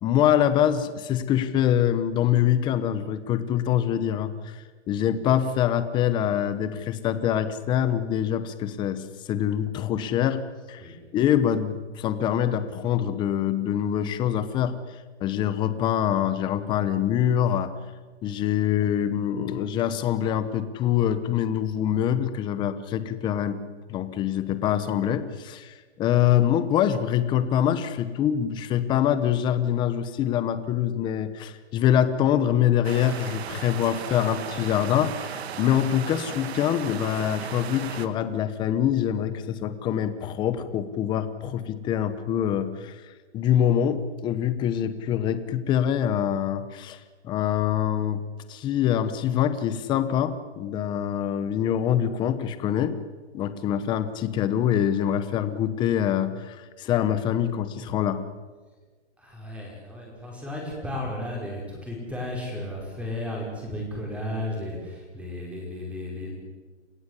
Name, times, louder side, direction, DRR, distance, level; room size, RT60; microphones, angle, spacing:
voice 1, 0.0-10.4 10.7-14.8 15.2-17.7 18.2-23.6 23.9-43.0 43.3-47.0 47.2-48.2 48.5-53.0 53.3-58.2, left 10 dB, 15° left, 12 dB, 0.9 m, -25 dB
sound 1, 32.8-38.1, right 8 dB, 65° right, 1.8 m, -36 dB
voice 2, 59.2-66.3, left 1 dB, 5° right, -2 dB, 5.3 m, -34 dB
28.0 x 15.5 x 8.3 m, 1.4 s
hypercardioid pair, 160°, 35 cm